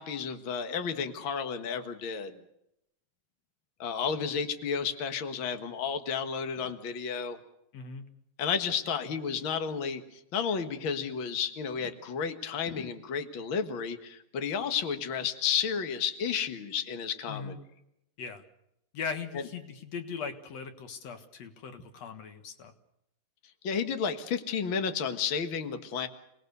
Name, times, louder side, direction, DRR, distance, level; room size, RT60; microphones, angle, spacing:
voice 1, 0.0-2.3 3.8-7.4 8.4-17.5 23.6-26.1, left 6 dB, 80° left, 7 dB, 1.1 m, -32 dB
voice 2, 7.7-8.1 17.3-17.6 18.2-18.4 18.9-22.7, left 5 dB, 55° left, 8 dB, 2.0 m, -39 dB
28.5 x 19.5 x 6.8 m, 0.80 s
omnidirectional pair, 4.8 m